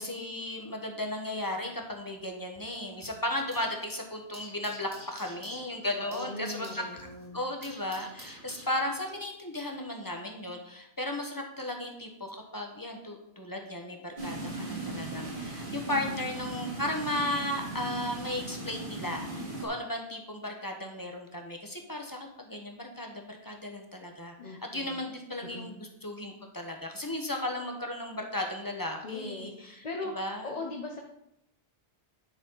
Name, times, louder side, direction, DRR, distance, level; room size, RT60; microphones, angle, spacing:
voice 1, 0.0-6.7 7.3-29.8 30.1-30.5, left 1 dB, 20° left, 2 dB, 1.1 m, -35 dB
sound 1, 1.7-3.9 4.1-9.2, right 1 dB, 70° right, 3.4 m, -51 dB
voice 2, 6.0-7.4 15.9-16.3 24.4-25.0 25.4-25.7 29.0-30.1 30.4-31.0, left 2 dB, 40° left, 0 dB, 0.8 m, -40 dB
sound 2, 14.2-19.7, right 2 dB, 50° right, 1.9 m, -38 dB
10.0 x 4.2 x 5.5 m, 0.81 s
omnidirectional pair, 1.1 m